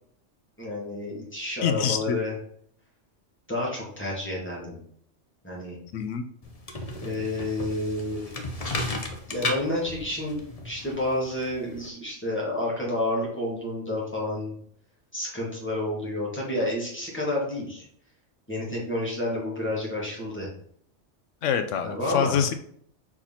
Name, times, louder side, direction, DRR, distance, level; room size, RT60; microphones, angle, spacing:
voice 1, 0.6-2.3 3.5-4.8 5.4-5.8 7.0-8.3 9.3-14.5 15.1-17.9 18.5-20.5 21.8-22.4, left 1 dB, 10° left, -4 dB, 2.3 m, -30 dB
voice 2, 1.6-2.2 5.9-6.2 21.4-22.5, left 8 dB, 85° left, 9 dB, 1.0 m, -25 dB
sound 1, 6.4-11.9, left 2 dB, 35° left, 0.9 m, -35 dB
4.9 x 4.3 x 5.6 m, 0.63 s
omnidirectional pair, 1.2 m